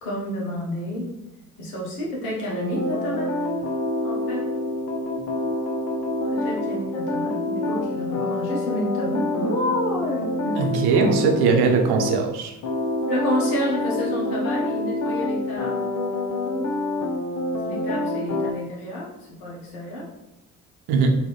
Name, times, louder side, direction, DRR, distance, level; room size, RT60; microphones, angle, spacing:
voice 1, 0.0-1.1 1.6-3.5 4.0-4.5 6.3-10.6 13.1-15.9 17.6-20.1, equal, 75° left, -4 dB, 1.3 m, -29 dB
sound 1, 2.5-12.2 12.6-18.5, left 2 dB, 40° left, 0.7 m, -27 dB
voice 2, 10.6-12.5 20.9-21.1, right 5 dB, 60° right, 2 dB, 0.9 m, -20 dB
3.9 x 3.0 x 3.2 m, 0.97 s
figure-of-eight pair, 45°, 44 cm